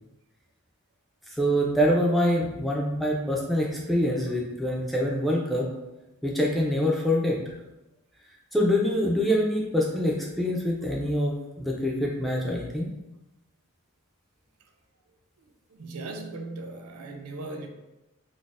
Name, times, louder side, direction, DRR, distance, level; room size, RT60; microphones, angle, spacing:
voice 1, 1.3-5.7 6.2-7.4 8.5-12.9, equal, ahead, -3 dB, 0.3 m, -25 dB
voice 2, 15.7-17.7, right 2 dB, 75° right, 3 dB, 0.4 m, -38 dB
3.8 x 2.0 x 2.4 m, 0.97 s
head